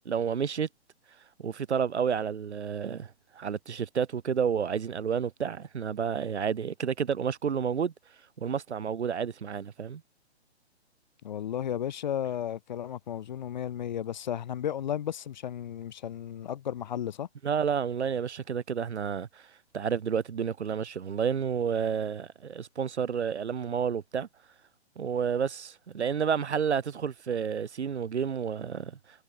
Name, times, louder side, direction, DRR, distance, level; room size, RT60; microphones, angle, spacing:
voice 1, 0.1-0.7 1.4-7.9 8.4-10.0 17.4-19.4 19.7-24.3 25.0-29.0, right 7 dB, 80° right, 0.6 m, -30 dB
voice 2, 11.2-17.3, left 10 dB, 45° left, 0.4 m, -34 dB
figure-of-eight pair, 125°, 33 cm